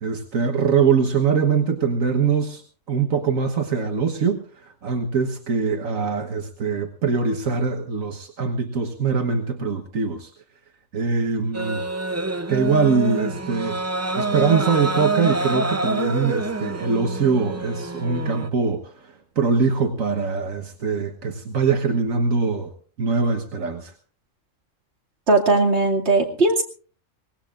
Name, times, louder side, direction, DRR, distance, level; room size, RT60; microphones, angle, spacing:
voice 1, 0.0-2.6 2.9-10.3 10.9-11.8 12.5-13.8 14.2-22.7 23.0-23.9, right 5 dB, 75° right, 4 dB, 1.7 m, -23 dB
sound 1, 11.5-18.5, right 2 dB, 20° right, 0.4 m, -27 dB
voice 2, 25.3-26.6, right 2 dB, 55° right, -1 dB, 2.8 m, -18 dB
24.0 x 19.5 x 2.5 m, 0.40 s
omnidirectional pair, 1.4 m